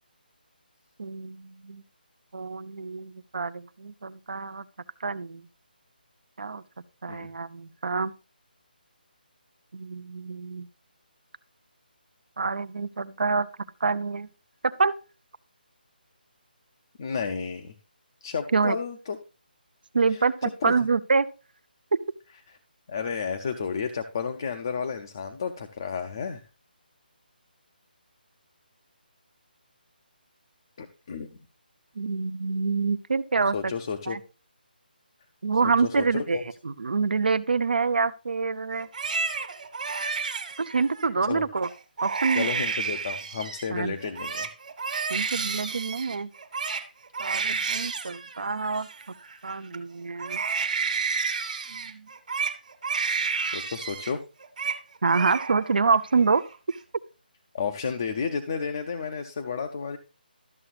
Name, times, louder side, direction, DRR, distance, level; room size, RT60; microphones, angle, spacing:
voice 1, 1.0-1.8 2.3-4.6 5.0-5.5 6.4-6.6 7.0-8.1 9.7-10.7 12.4-13.5 13.8-14.3 14.6-14.9 18.5-18.8 19.9-21.3 32.0-33.7 34.1-34.2 35.4-36.4 36.6-38.9 40.6-41.7 42.0-42.5 43.7-44.0 45.1-46.3 47.2-48.9 49.4-50.4 51.7-52.1 55.0-56.4, right 4 dB, 70° right, 14 dB, 0.6 m, -26 dB
voice 2, 17.0-17.7 18.2-19.2 20.1-20.7 22.9-26.4 30.8-31.3 33.5-34.2 35.6-36.4 41.3-41.4 42.4-44.5 53.4-54.2 57.5-60.0, left 6 dB, 25° left, 5 dB, 0.5 m, -32 dB
Crying sobbing, 38.8-41.1 41.6-41.7 42.0-43.7 44.0-49.8 50.2-54.1 54.4-54.8 55.1-55.8 56.1-56.8, right 5 dB, 50° right, 1.5 m, -31 dB
13.0 x 6.8 x 2.4 m, 0.31 s
hypercardioid pair, 175°, 5 cm